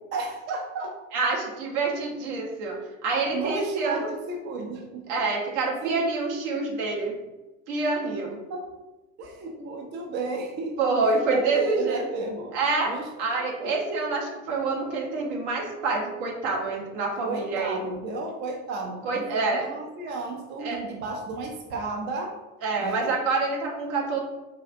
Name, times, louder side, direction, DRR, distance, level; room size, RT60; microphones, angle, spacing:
voice 1, 0.1-1.0 3.3-5.2 5.8-6.1 8.5-8.7 9.2-10.9 11.3-12.5 12.9-13.1 13.5-13.7 17.2-22.3 22.8-23.1, right 3 dB, 30° right, 1 dB, 0.4 m, -33 dB
voice 2, 1.1-4.1 5.1-7.1 7.7-8.4 10.8-12.0 12.5-12.9 13.2-17.8 19.0-19.7 20.6-20.8 22.6-24.2, right 3 dB, 60° right, 0 dB, 0.8 m, -27 dB
3.9 x 2.4 x 2.4 m, 1.1 s
figure-of-eight pair, 65°, 40 cm